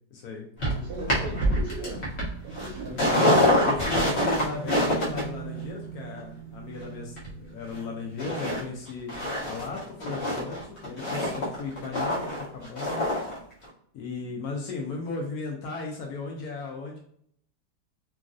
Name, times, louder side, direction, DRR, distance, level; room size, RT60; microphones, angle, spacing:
voice 1, 0.1-0.5 3.0-9.1 9.5-13.0 13.9-17.0, left 3 dB, 70° left, 0 dB, 1.0 m, -36 dB
sound 1, 0.6-7.8 8.2-8.6 8.9-13.4 13.6-13.7, left 1 dB, 45° left, 1.0 m, -26 dB
voice 2, 0.8-2.1 2.4-3.0 3.7-3.9, right 2 dB, 70° right, 2 dB, 1.0 m, -37 dB
3.0 x 2.5 x 2.4 m, 0.64 s
omnidirectional pair, 1.8 m